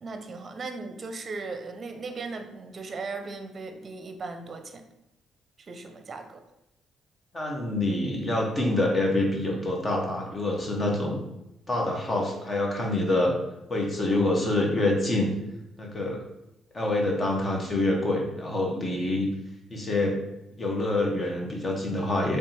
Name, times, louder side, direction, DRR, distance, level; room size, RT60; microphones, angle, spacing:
voice 1, 0.0-4.8 5.6-6.4, right 3 dB, 40° right, 6 dB, 0.7 m, -37 dB
voice 2, 7.3-11.2 11.7-13.3 13.7-15.3 15.8-16.2 16.7-19.3 19.7-20.2 20.6-22.4, left 2 dB, 30° left, 0 dB, 1.2 m, -26 dB
3.6 x 3.4 x 4.3 m, 0.88 s
cardioid pair, 90°, 0 cm